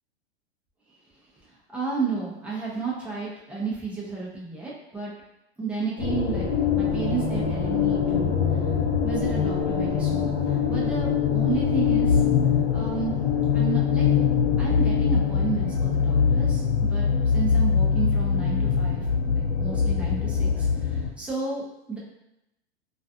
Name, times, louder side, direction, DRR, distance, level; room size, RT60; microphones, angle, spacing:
voice 1, 1.7-5.1 5.6-6.5 6.8-8.3 9.0-12.2 12.7-13.2 13.5-14.1 14.6-16.6 16.9-22.0, right 5 dB, 5° right, -6 dB, 0.5 m, -32 dB
sound 1, 6.0-21.1, left 6 dB, 50° left, 0.8 m, -23 dB
2.4 x 2.2 x 2.6 m, 0.86 s
hypercardioid pair, 115°, 33 cm